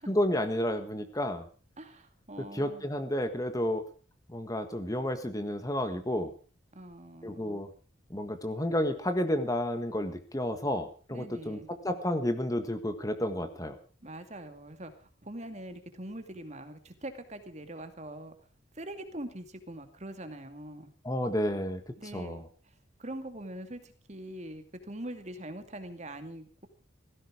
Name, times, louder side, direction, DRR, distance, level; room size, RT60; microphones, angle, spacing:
voice 1, 0.1-1.4 2.5-3.8 4.3-6.3 7.2-7.7 8.1-13.8 21.0-22.4, left 1 dB, 20° left, 9 dB, 1.5 m, -31 dB
voice 2, 1.8-2.8 6.7-7.6 11.1-11.7 14.0-18.4 18.8-20.9 22.0-22.5 23.0-26.7, right 1 dB, 35° right, 8 dB, 2.3 m, -43 dB
17.5 x 15.5 x 4.9 m, 0.38 s
head